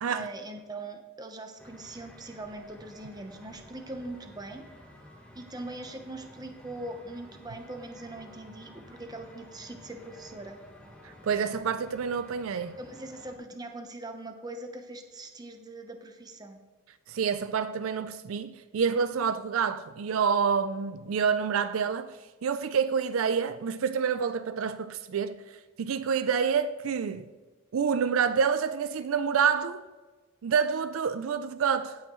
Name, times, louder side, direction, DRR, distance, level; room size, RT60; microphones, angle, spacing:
voice 1, 0.1-4.6 5.3-10.6 12.8-16.6, right 2 dB, 20° right, 0.9 m, -41 dB
sound 1, 1.6-13.4, left 1 dB, 5° left, 1.2 m, -52 dB
voice 2, 11.0-12.8 17.1-22.2 22.4-25.4 25.8-27.3 27.7-29.8 30.4-32.0, right 6 dB, 70° right, 0.4 m, -28 dB
17.0 x 5.7 x 3.1 m
head